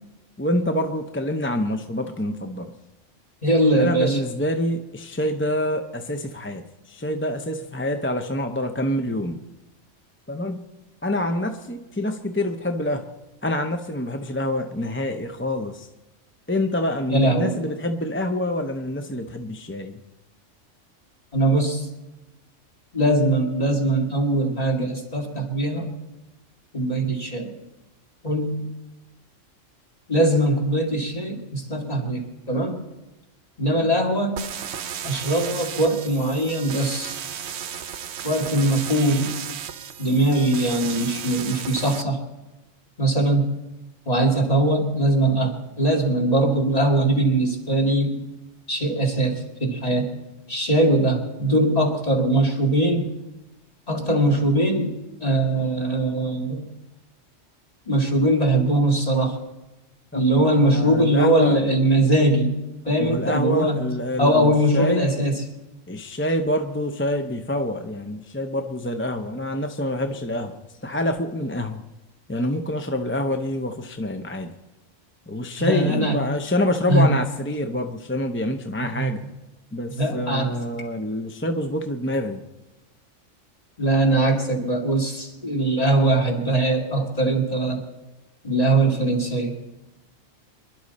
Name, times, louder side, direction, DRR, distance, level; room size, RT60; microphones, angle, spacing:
voice 1, 0.4-2.7 3.8-9.4 10.3-10.6 11.0-13.1 13.4-15.9 16.5-20.0 60.1-61.6 63.0-65.1 65.9-71.8 72.3-74.5 75.3-79.2 79.7-82.4, left 1 dB, 15° left, 5 dB, 0.6 m, -26 dB
voice 2, 3.4-4.2 17.1-17.5 21.3-21.9 22.9-25.9 26.7-27.5 28.2-28.7 30.1-32.8 33.6-34.4 35.0-37.2 38.2-39.3 40.0-42.2 43.0-43.5 44.1-48.2 48.7-50.1 50.5-53.1 53.9-54.9 55.2-56.7 57.9-59.4 60.1-62.6 62.9-63.9 64.2-65.4 75.6-76.1 76.9-77.1 78.9-79.1 80.0-80.5 83.8-87.8 88.4-89.5, right 1 dB, 30° left, 0 dB, 2.5 m, -21 dB
sound 1, 34.4-42.0, right 8 dB, 65° right, 0.9 m, -34 dB
25.5 x 11.5 x 4.2 m, 1.0 s
omnidirectional pair, 1.3 m